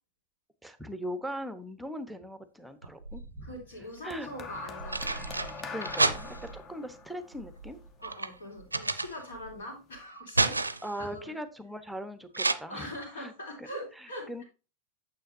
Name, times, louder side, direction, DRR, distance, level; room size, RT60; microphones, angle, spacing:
voice 1, 0.6-3.5 4.0-4.3 5.7-7.8 10.8-13.3 13.6-13.7 14.3-14.4, equal, ahead, 11 dB, 0.9 m, -39 dB
sound 1, 2.8-3.6 4.5-6.6 7.3-9.6 9.9-11.0 12.3-12.5, right 3 dB, 80° right, 0.6 m, -31 dB
voice 2, 3.4-5.2 8.0-10.6 11.0-11.3 12.7-14.4, left 1 dB, 65° left, 1 dB, 3.9 m, -42 dB
sound 2, 4.1-8.5 9.5-9.7, left 4 dB, 30° left, 1.0 m, -43 dB
9.1 x 7.2 x 2.6 m, 0.32 s
figure-of-eight pair, 90°, 0 cm